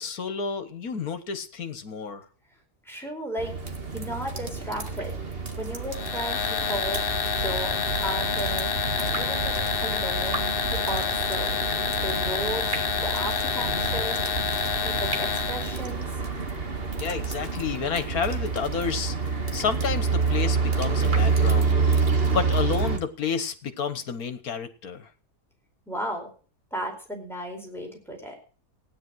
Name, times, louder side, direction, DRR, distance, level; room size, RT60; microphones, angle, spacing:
voice 1, 0.0-2.3 17.0-19.2 19.5-21.8 22.3-25.1, left 6 dB, 65° left, 11 dB, 1.8 m, -30 dB
voice 2, 2.8-3.6 3.9-5.1 5.6-7.0 7.3-7.7 8.0-8.7 9.0-10.4 10.7-11.5 12.0-12.8 13.0-14.2 14.8-16.1 25.9-26.3 26.7-28.3, right 1 dB, ahead, 1 dB, 4.5 m, -34 dB
sound 1, 3.4-23.0, right 4 dB, 40° right, 2.1 m, -28 dB
sound 2, 5.9-15.8, left 7 dB, 40° left, 1.1 m, -28 dB
16.0 x 10.0 x 6.2 m, 0.39 s
omnidirectional pair, 1.7 m